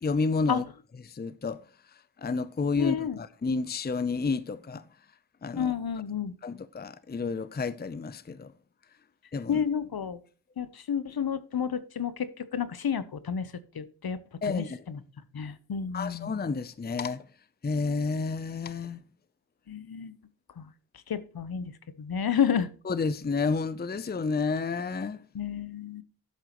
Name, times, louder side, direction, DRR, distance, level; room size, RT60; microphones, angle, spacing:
voice 1, 0.0-0.6 1.0-1.6 2.2-4.8 5.4-5.7 6.4-8.5 9.3-9.6 14.4-14.8 15.9-17.2 17.6-19.0 22.8-25.2, left 4 dB, 25° left, 0.6 m, -30 dB
voice 2, 2.8-3.2 5.6-6.3 9.5-10.2 10.6-13.5 13.7-14.2 14.5-15.0 15.3-16.3 19.7-20.1 20.6-20.7 21.1-21.7 22.0-22.7 25.3-26.0, left 7 dB, 60° left, 1.0 m, -30 dB
11.5 x 8.1 x 3.0 m
cardioid pair, 55°, 42 cm